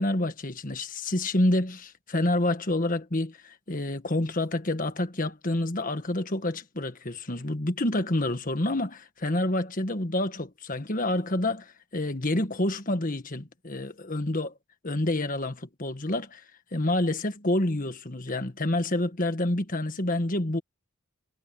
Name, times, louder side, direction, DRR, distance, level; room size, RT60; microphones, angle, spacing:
voice 1, 0.0-14.5 14.8-16.4 16.7-20.6, left 1 dB, 40° left, 1.5 m, -28 dB
head